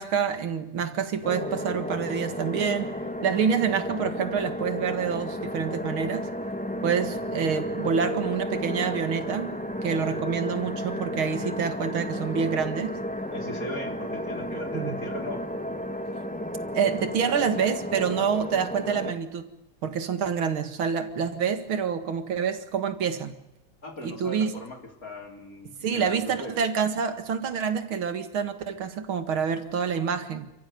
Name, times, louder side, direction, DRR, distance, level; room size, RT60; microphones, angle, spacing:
voice 1, 0.0-2.9 3.2-6.3 6.8-9.5 9.8-13.0 14.7-15.0 16.7-19.5 19.8-23.4 24.0-24.5 25.8-30.5, right 6 dB, 90° right, 2.7 m, -27 dB
sound 1, 1.2-19.1, equal, 5° left, 2.2 m, -33 dB
voice 2, 13.3-15.5 23.8-26.6, left 1 dB, 45° left, 4.3 m, -38 dB
29.5 x 14.5 x 9.5 m
omnidirectional pair, 2.2 m